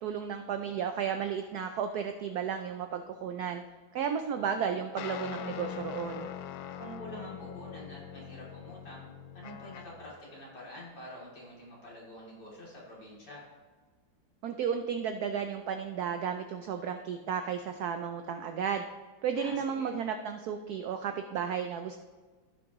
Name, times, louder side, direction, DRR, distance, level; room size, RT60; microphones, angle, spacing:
voice 1, 0.0-3.6 3.9-6.3 14.4-18.9 19.2-22.0, right 7 dB, 75° right, 7 dB, 0.9 m, -33 dB
sound 1, 5.0-10.1, left 9 dB, 80° left, 1.3 m, -42 dB
voice 2, 6.7-9.1 9.3-13.5 19.3-19.9, equal, 55° left, -6 dB, 3.4 m, -47 dB
15.5 x 6.1 x 3.0 m, 1.4 s
omnidirectional pair, 2.1 m